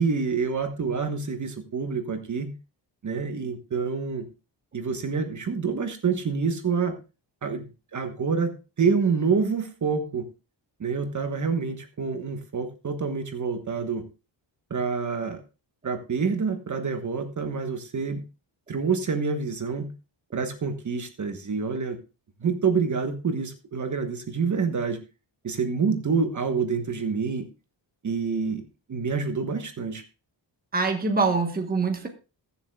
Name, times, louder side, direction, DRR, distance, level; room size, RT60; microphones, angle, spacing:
voice 1, 0.0-2.5 3.0-4.3 4.7-6.9 7.4-7.7 7.9-8.5 8.8-10.3 10.8-14.0 14.7-15.4 15.8-18.2 18.7-19.9 20.3-22.0 22.4-25.0 25.4-27.5 28.0-28.6 28.9-30.0, right 5 dB, 40° right, 7 dB, 1.3 m, -27 dB
voice 2, 30.7-32.1, right 4 dB, 20° right, 4 dB, 1.2 m, -24 dB
21.0 x 7.2 x 2.3 m, 0.31 s
wide cardioid pair, 160°, 44 cm